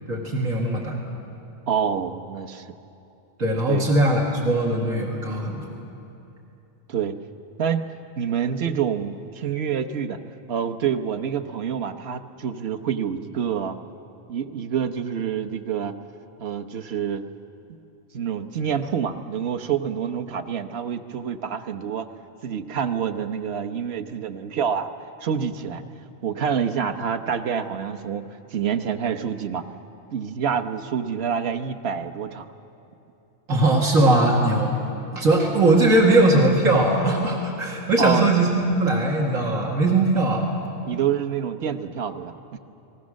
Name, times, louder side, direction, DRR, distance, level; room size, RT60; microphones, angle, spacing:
voice 1, 0.1-1.0 3.4-5.7 33.5-34.7 35.1-40.5, right 2 dB, 85° right, -2 dB, 2.5 m, -20 dB
voice 2, 1.7-2.7 3.7-3.9 6.9-7.2 7.6-7.8 8.2-10.2 10.5-13.8 14.3-16.0 16.4-17.2 18.1-22.1 22.4-24.9 25.2-25.8 26.2-28.3 28.5-29.6 30.1-32.5 38.0-38.3 40.9-42.6, right 7 dB, 55° right, 9 dB, 1.1 m, -27 dB
29.5 x 20.0 x 6.4 m, 2.9 s
omnidirectional pair, 1.4 m